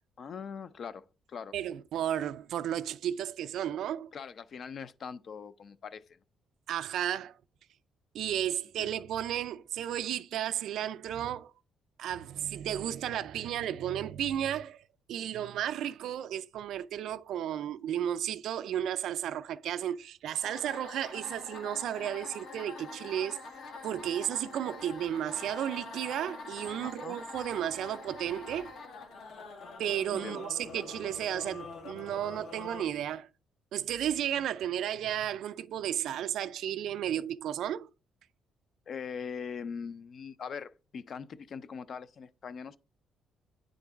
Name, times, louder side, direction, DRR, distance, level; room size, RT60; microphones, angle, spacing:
voice 1, 0.2-1.5 4.1-6.0 8.8-8.9 26.8-27.2 30.1-30.5 38.9-42.8, left 6 dB, 50° left, 0.4 m, -41 dB
voice 2, 1.5-4.1 6.7-7.3 8.1-11.5 12.0-14.8 15.1-23.4 23.8-28.7 29.8-33.3 33.7-37.9, right 10 dB, 75° right, 0.3 m, -33 dB
sound 1, 20.4-32.8, left 3 dB, 75° left, 1.5 m, -45 dB
9.1 x 3.8 x 3.5 m
cardioid pair, 125°, 0 cm